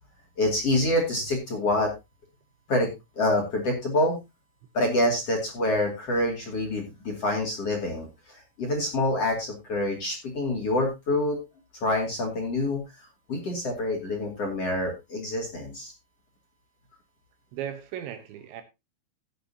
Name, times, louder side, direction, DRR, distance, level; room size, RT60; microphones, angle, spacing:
voice 1, 0.4-1.9 2.7-2.9 3.2-4.2 4.7-8.1 8.6-11.4 11.8-12.8 13.3-15.9, left 1 dB, 40° left, 2.7 m, -26 dB
voice 2, 17.5-18.6, right 10 dB, 75° right, 3.0 m, -36 dB
16.5 x 8.1 x 2.8 m
omnidirectional pair, 5.8 m